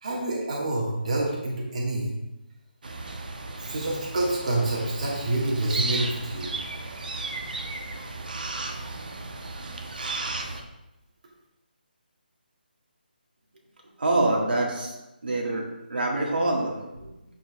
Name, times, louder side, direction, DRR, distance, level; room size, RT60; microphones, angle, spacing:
voice 1, 0.0-2.1 3.6-6.5, right 1 dB, 45° right, -4 dB, 1.5 m, -27 dB
sound 1, 2.8-10.6, right 3 dB, 60° right, 0.8 m, -34 dB
voice 2, 14.0-14.9 15.2-15.6 15.9-17.1, right 2 dB, 75° right, -1 dB, 1.6 m, -25 dB
12.0 x 4.5 x 2.3 m, 0.97 s
hypercardioid pair, 175°, 5 cm